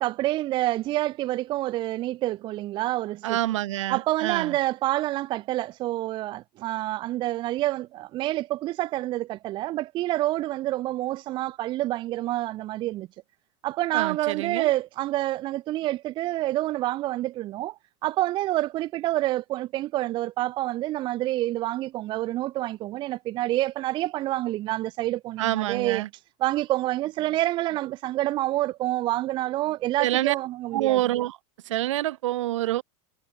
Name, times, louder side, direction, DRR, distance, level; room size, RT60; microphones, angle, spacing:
voice 1, 0.0-3.4 3.9-13.1 13.6-26.0 26.4-31.0, right 16 dB, 30° right, 0.6 m, -27 dB
voice 2, 3.2-4.6 13.9-14.7 25.4-26.1 30.0-30.3 30.7-31.4 31.7-32.8, right 15 dB, 80° right, 2.6 m, -26 dB
supercardioid pair, 150°, 15 cm